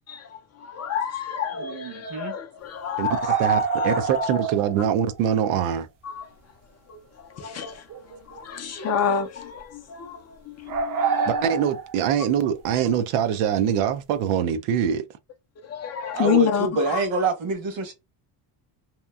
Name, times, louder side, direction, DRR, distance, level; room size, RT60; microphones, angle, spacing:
voice 1, 0.1-4.4 6.0-6.3 6.9-7.0 7.2-11.4 15.6-17.0, left 7 dB, 35° left, 0.4 m, -29 dB
voice 2, 1.6-2.3 16.1-17.9, right 3 dB, 65° right, 1.2 m, -26 dB
sound 1, 3.1-4.8 5.1-5.2 7.7-8.4 8.8-9.1 10.7-12.1, right 6 dB, 45° right, 0.5 m, -27 dB
voice 3, 3.4-5.9 11.3-15.0, right 9 dB, 85° right, 0.6 m, -23 dB
2.8 x 2.5 x 2.3 m
cardioid pair, 135°, 49 cm